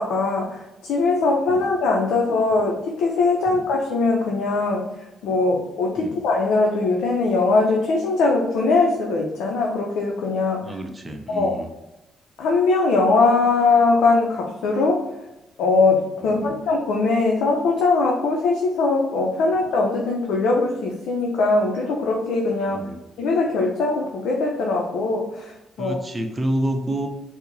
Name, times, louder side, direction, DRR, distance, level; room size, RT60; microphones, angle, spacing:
voice 1, 0.0-4.9 5.2-10.8 11.3-11.5 12.4-15.0 15.6-22.8 23.2-26.0, left 3 dB, 80° left, -1 dB, 0.4 m, -21 dB
voice 2, 10.6-11.7 16.4-16.6 22.7-23.0 25.8-27.1, right 1 dB, 20° right, 4 dB, 0.5 m, -28 dB
4.5 x 2.0 x 2.6 m, 0.95 s
cardioid pair, 90°, 0 cm